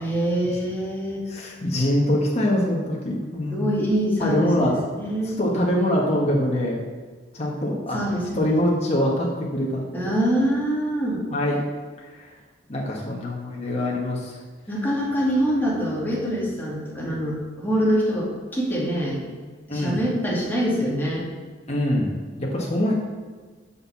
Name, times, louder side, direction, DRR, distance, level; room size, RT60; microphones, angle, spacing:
voice 1, 0.0-1.2 3.5-5.4 7.9-8.5 9.9-11.2 14.7-19.2 19.7-21.3, equal, 10° left, -5 dB, 2.4 m, -24 dB
voice 2, 1.3-3.6 4.2-4.8 5.2-6.8 7.3-8.0 8.3-10.1 11.3-11.6 12.1-12.3 12.7-14.4 19.7-20.0 21.7-22.9, left 1 dB, 35° left, -3 dB, 1.4 m, -24 dB
6.9 x 5.6 x 7.2 m, 1.4 s
head